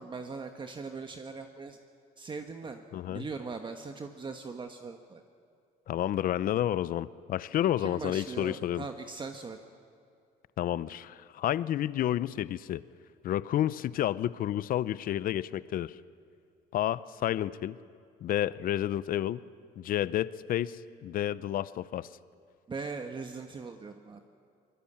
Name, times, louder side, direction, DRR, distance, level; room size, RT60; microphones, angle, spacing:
voice 1, 0.0-1.8 2.2-5.2 7.8-9.6 22.7-24.2, right 4 dB, 30° right, 5 dB, 1.3 m, -40 dB
voice 2, 2.9-3.3 5.9-8.8 10.6-12.8 13.2-16.0 16.7-17.8 18.2-19.4 19.8-22.1, left 12 dB, 60° left, 17 dB, 0.7 m, -30 dB
23.5 x 21.0 x 8.8 m, 2.3 s
cardioid pair, 110°, 17 cm